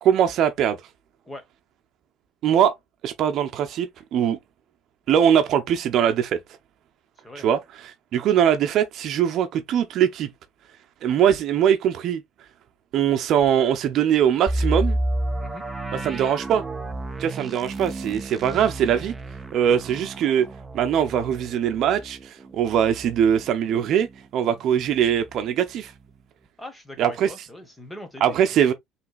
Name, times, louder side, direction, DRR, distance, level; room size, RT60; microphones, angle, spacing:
voice 1, 0.0-0.8 2.4-2.7 3.0-4.4 5.1-6.4 7.4-10.3 11.0-12.2 12.9-15.0 15.9-16.6 17.2-19.1 19.5-20.5 20.7-24.1 24.3-25.9 27.0-27.3 28.2-28.7, right 9 dB, 55° right, 0.8 m, -21 dB
sound 1, 14.5-24.2 24.5-24.6 25.1-25.4, right 1 dB, 15° right, 0.8 m, -31 dB
voice 2, 26.6-28.6, left 1 dB, 10° left, 1.5 m, -41 dB
5.7 x 3.3 x 2.4 m
cardioid pair, 115°, 0 cm